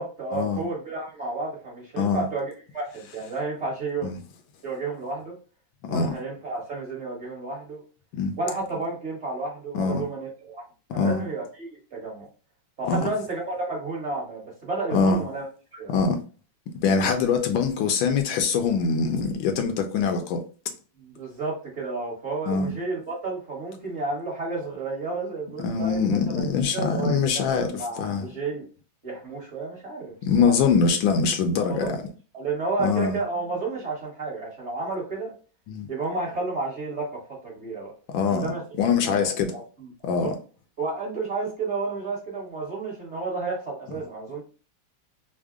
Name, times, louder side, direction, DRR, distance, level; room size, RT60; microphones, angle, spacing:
voice 1, 0.0-4.1 4.6-5.3 5.9-7.8 8.4-10.6 10.9-12.3 12.8-15.4 15.7-16.0 21.0-28.6 29.0-30.5 31.7-32.0 32.3-35.3 35.9-37.9 38.3-38.6 39.0-40.4 40.8-44.4, right 3 dB, 40° right, 1.1 m, -31 dB
voice 2, 14.9-15.2 15.9-16.2 16.8-20.4 22.5-22.7 25.6-28.3 30.2-32.0 32.8-33.2 35.7-35.9 38.1-38.5 38.8-39.5 40.0-40.4, left 5 dB, 80° left, 1.3 m, -23 dB
3.5 x 2.1 x 3.5 m
omnidirectional pair, 2.2 m